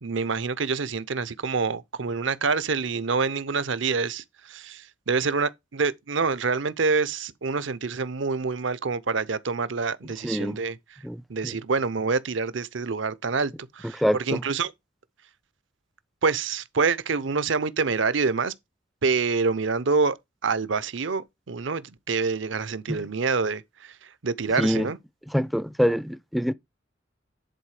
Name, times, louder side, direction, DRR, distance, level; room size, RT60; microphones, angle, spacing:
voice 1, 0.0-10.8 11.3-14.7 16.2-18.5 19.0-20.2 20.4-25.0, right 4 dB, 70° right, 0.7 m, -26 dB
voice 2, 10.2-10.6 11.0-11.6 14.0-14.4 22.9-23.1 24.6-24.9 25.3-26.5, equal, ahead, 0.4 m, -25 dB
10.5 x 4.1 x 4.8 m
head